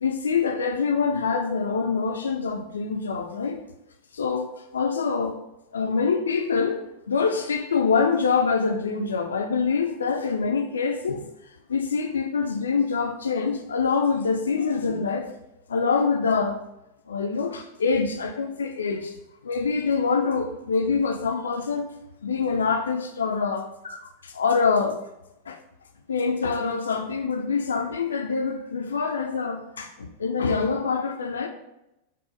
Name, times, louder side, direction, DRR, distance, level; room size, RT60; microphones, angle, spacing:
voice 1, 0.0-3.6 4.1-5.4 5.7-6.8 7.1-15.3 15.7-16.6 17.1-19.1 19.4-21.9 22.2-25.0 25.5-25.6 26.1-31.5, left 5 dB, 70° left, 4 dB, 0.3 m, -25 dB
4.6 x 2.0 x 4.3 m, 0.86 s
figure-of-eight pair, 90°, 0 cm